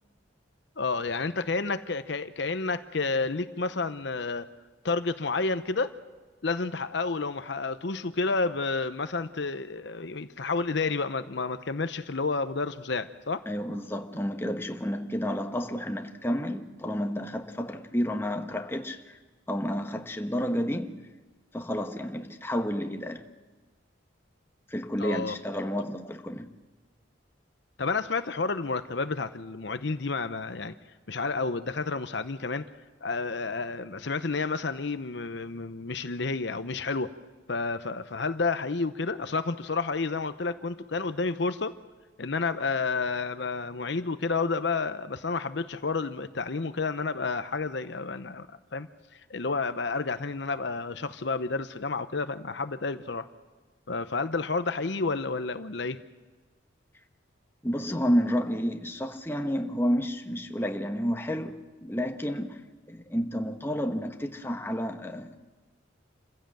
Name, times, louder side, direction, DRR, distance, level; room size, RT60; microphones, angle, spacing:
voice 1, 0.8-4.5 4.8-5.9 6.4-13.4 25.0-25.4 27.8-30.7 31.1-32.7 33.0-37.1 37.5-41.8 42.2-53.3 53.9-56.0, left 4 dB, 60° left, 0.8 m, -30 dB
voice 2, 13.5-19.2 19.5-21.0 21.5-23.3 24.7-26.5 57.6-62.6 62.9-65.4, equal, 10° left, 1.2 m, -30 dB
27.5 x 16.0 x 7.7 m
head